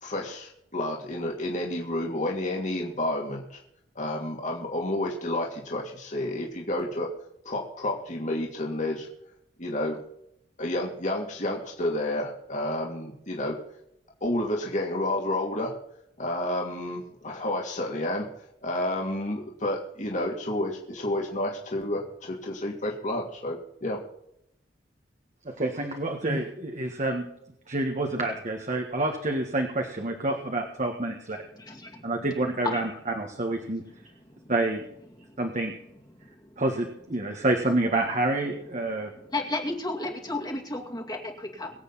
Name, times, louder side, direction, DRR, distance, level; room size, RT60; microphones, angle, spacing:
voice 1, 0.0-3.6 3.9-7.1 7.4-9.1 9.6-10.0 10.6-13.6 14.2-15.7 16.2-18.3 18.6-24.0, left 1 dB, 45° left, -1 dB, 2.6 m, -30 dB
voice 2, 25.5-27.3 27.7-31.4 32.0-33.8 34.5-34.8 35.4-35.7 36.6-39.1, right 2 dB, 45° right, 2 dB, 1.8 m, -28 dB
voice 3, 31.6-32.1 32.6-32.9 34.4-34.5 35.3-35.4 36.4-36.5 38.9-41.7, left 2 dB, 25° left, 0 dB, 2.3 m, -33 dB
24.0 x 8.2 x 4.2 m, 0.76 s
head